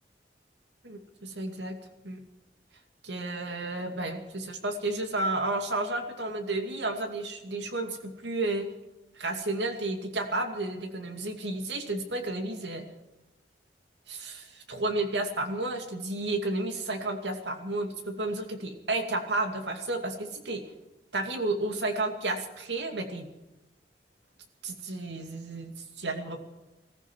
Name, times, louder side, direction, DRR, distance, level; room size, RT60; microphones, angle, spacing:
voice 1, 0.8-1.7 2.0-2.2 3.0-8.7 9.2-12.8 14.1-20.6 21.1-23.3 24.6-26.4, right 2 dB, 85° right, 5 dB, 2.5 m, -32 dB
20.5 x 14.5 x 4.7 m, 1.0 s
head